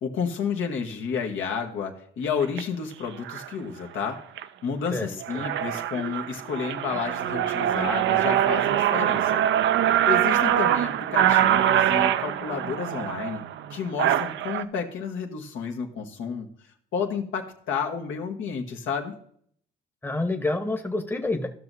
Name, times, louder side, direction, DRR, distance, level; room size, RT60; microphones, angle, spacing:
voice 1, 0.0-4.2 4.6-9.4 10.1-13.4 13.7-16.5 16.9-19.2, left 6 dB, 80° left, 2 dB, 1.3 m, -31 dB
sound 1, 2.4-2.6 3.3-3.5 4.0-4.4 4.9-5.0 5.2-14.6, right 11 dB, 70° right, 0.5 m, -23 dB
voice 2, 4.9-5.4 20.0-21.5, left 2 dB, 10° left, 5 dB, 1.0 m, -28 dB
14.5 x 6.1 x 2.7 m, 0.62 s
cardioid pair, 90°, 20 cm